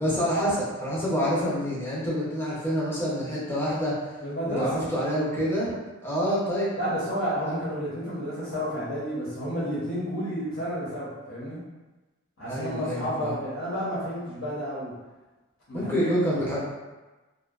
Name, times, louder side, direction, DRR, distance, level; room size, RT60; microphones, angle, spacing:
voice 1, 0.0-4.0 4.5-5.7 6.0-6.7 7.5-7.6 12.5-13.3 15.7-16.6, equal, 10° left, -7 dB, 0.5 m, -27 dB
voice 2, 4.2-4.8 6.8-11.6 12.4-14.9 15.7-16.2 16.5-16.6, equal, 75° left, -9 dB, 0.7 m, -31 dB
2.6 x 2.1 x 2.3 m, 1.2 s
head